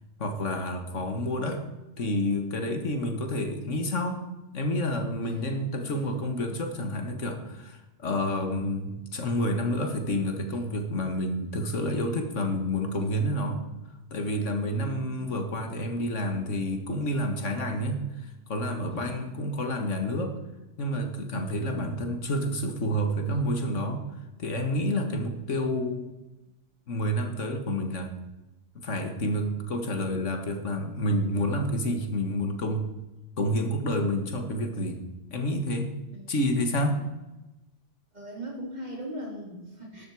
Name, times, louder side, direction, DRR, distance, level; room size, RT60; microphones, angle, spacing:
voice 1, 0.2-1.6 2.0-4.2 4.5-13.6 14.1-20.4 20.8-24.0 24.4-26.1 26.9-28.1 28.8-32.9 33.4-35.0 35.3-35.9 36.3-37.0, equal, 90° left, 5 dB, 2.0 m, -29 dB
voice 2, 5.2-6.5 14.5-15.3 18.9-19.4 36.1-36.3 38.1-40.1, right 1 dB, 35° right, -2 dB, 3.6 m, -41 dB
13.0 x 12.0 x 4.8 m, 1.0 s
omnidirectional pair, 1.2 m